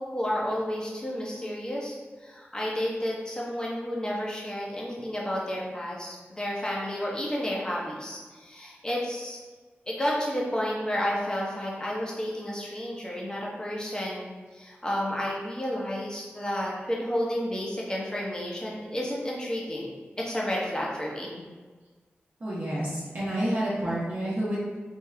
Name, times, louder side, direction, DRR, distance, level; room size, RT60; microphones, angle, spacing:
voice 1, 0.0-9.4 9.9-21.5, equal, 20° left, -4 dB, 1.0 m, -31 dB
voice 2, 22.4-24.8, right 1 dB, 50° right, -9 dB, 1.0 m, -29 dB
3.6 x 2.4 x 3.3 m, 1.4 s
cardioid pair, 50°, 4 cm